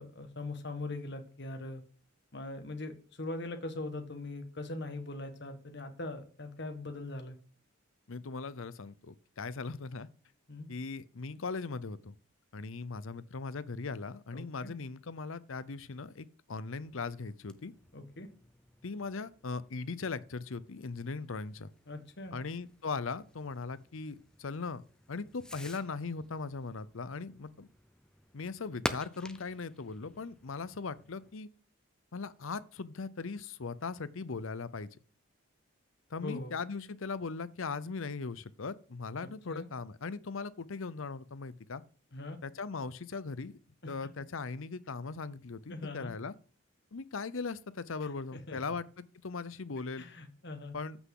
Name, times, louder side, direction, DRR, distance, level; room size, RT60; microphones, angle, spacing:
voice 1, 0.0-1.8 2.3-7.4 10.5-10.7 14.3-14.7 17.9-18.3 21.9-22.4 36.2-36.5 39.2-39.7 42.1-42.4 43.8-43.9 45.7-46.1 48.3-48.6 50.0-50.8, left 2 dB, 55° left, 1.6 m, -41 dB
voice 2, 8.1-10.1 10.7-12.1 12.5-17.7 18.8-21.7 22.3-24.8 25.1-27.7 28.3-31.5 32.1-34.9 36.1-41.8 42.4-43.5 43.9-46.3 46.9-50.1 50.7-51.0, left 4 dB, 70° left, 0.7 m, -39 dB
Fireworks, 16.8-31.4, left 1 dB, 5° left, 0.5 m, -48 dB
14.0 x 6.1 x 3.8 m
head